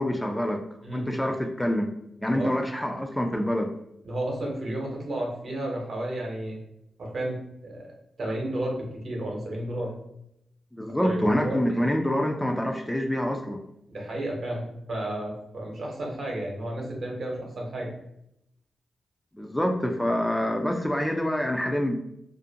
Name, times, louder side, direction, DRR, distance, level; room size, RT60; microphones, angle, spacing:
voice 1, 0.0-0.6 0.9-1.9 2.2-3.7 10.7-13.6 19.3-22.0, left 1 dB, 10° left, 3 dB, 0.3 m, -26 dB
voice 2, 4.0-6.6 7.0-7.9 8.2-9.9 11.0-11.8 13.9-17.9, right 1 dB, 65° right, -1 dB, 0.9 m, -32 dB
2.5 x 2.1 x 2.7 m, 0.80 s
cardioid pair, 55°, 0 cm